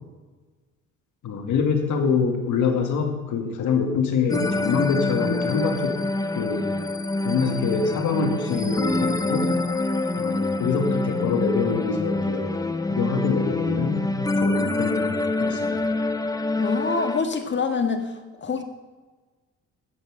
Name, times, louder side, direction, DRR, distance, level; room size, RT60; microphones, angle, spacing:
voice 1, 1.2-6.0 6.4-6.7 7.2-9.5 10.2-12.6 12.9-15.8, left 5 dB, 75° left, 4 dB, 2.1 m, -25 dB
sound 1, 4.3-17.2, left 2 dB, 10° left, 0.7 m, -26 dB
voice 2, 16.6-18.1 18.4-18.6, left 4 dB, 40° left, 6 dB, 1.6 m, -25 dB
11.0 x 7.9 x 6.5 m, 1.3 s
cardioid pair, 90°, 30 cm